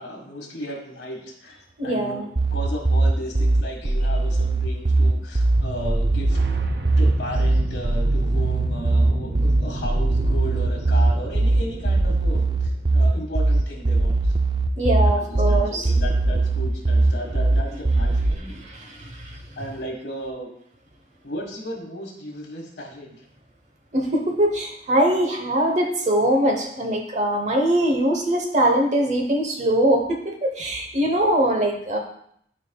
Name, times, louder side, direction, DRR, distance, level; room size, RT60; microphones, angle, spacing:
voice 1, 0.0-2.2 2.5-6.4 7.0-14.3 15.0-18.5 19.6-20.5 21.2-23.1, equal, 65° left, 1 dB, 1.6 m, -35 dB
voice 2, 1.8-2.3 14.8-15.9 18.5-19.4 23.9-32.0, right 1 dB, 40° right, 3 dB, 1.0 m, -22 dB
sound 1, 2.4-18.4, right 2 dB, 25° right, 0.4 m, -20 dB
sound 2, 5.6-13.3, right 2 dB, 60° right, 0.7 m, -32 dB
12.0 x 4.9 x 2.3 m, 0.69 s
head